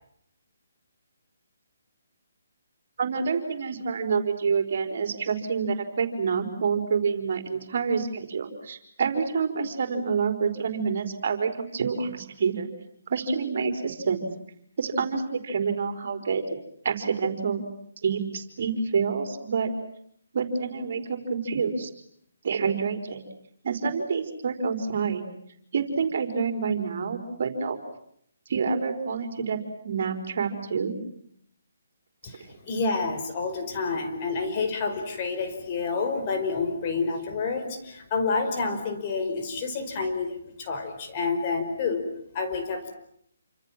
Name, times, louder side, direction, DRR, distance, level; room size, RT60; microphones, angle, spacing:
voice 1, 3.0-12.7 13.1-14.3 14.8-16.5 16.8-17.6 18.0-19.7 20.3-21.9 22.4-23.2 23.6-25.2 25.7-27.8 28.5-30.9, right 5 dB, 55° right, 7 dB, 4.4 m, -27 dB
voice 2, 32.2-42.1 42.3-42.9, left 4 dB, 35° left, 5 dB, 5.2 m, -29 dB
28.5 x 26.5 x 7.4 m, 0.69 s
hypercardioid pair, 155°, 0 cm